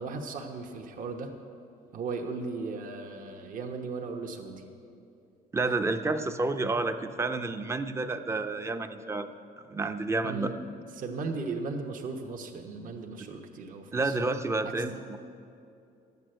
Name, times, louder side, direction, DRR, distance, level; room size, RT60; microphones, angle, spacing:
voice 1, 0.0-1.3 1.9-4.6 5.6-5.7 10.2-10.6 11.0-14.2, right 4 dB, 55° right, 3 dB, 1.1 m, -36 dB
voice 2, 5.5-9.3 9.7-10.5 13.9-15.2, right 3 dB, 15° right, 8 dB, 0.6 m, -30 dB
11.5 x 8.3 x 7.8 m, 2.5 s
cardioid pair, 110°, 17 cm